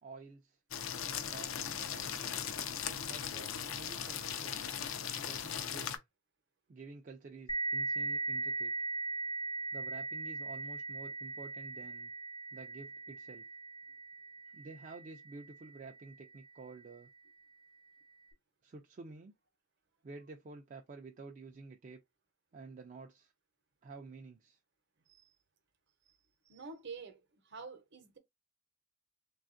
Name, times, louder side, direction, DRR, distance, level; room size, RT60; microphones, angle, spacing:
voice 1, 0.0-0.6 1.3-2.4 3.1-4.6 5.2-6.0 6.7-8.7 9.7-12.1 12.5-13.4 14.5-17.1 18.6-19.3 20.0-22.0 22.5-23.3 23.8-24.6, right 3 dB, 40° right, 0.3 m, -51 dB
sound 1, 0.7-6.0, left 8 dB, 75° left, 0.5 m, -38 dB
sound 2, 7.5-16.7, right 2 dB, 25° left, 0.4 m, -39 dB
voice 2, 26.4-28.2, right 4 dB, 55° right, 0.7 m, -48 dB
3.4 x 2.3 x 2.5 m
head